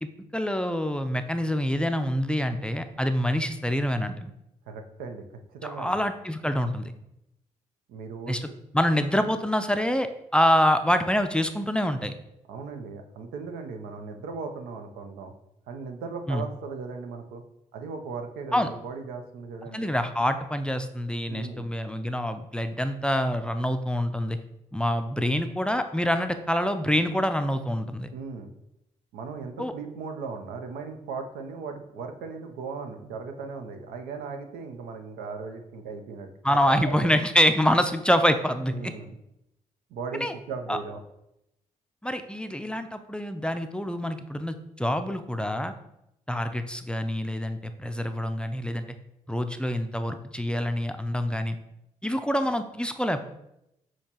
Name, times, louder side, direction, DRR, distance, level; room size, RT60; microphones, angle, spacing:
voice 1, 0.0-4.3 5.6-6.9 8.3-8.4 8.7-12.1 16.3-16.5 18.5-18.7 19.7-24.4 24.7-28.1 29.6-29.7 36.4-38.9 40.2-40.3 40.7-40.8 42.0-45.7 46.3-48.8 49.3-51.6 52.0-53.2, equal, 5° left, 8 dB, 0.4 m, -26 dB
voice 2, 4.7-5.2 5.5-6.0 7.9-8.4 12.5-15.3 15.7-17.4 17.7-19.9 21.3-21.7 28.1-28.5 29.1-37.1 38.7-39.2 39.9-41.0, right 4 dB, 90° right, 5 dB, 0.5 m, -37 dB
6.4 x 2.9 x 2.9 m, 0.85 s
supercardioid pair, 60°, 15 cm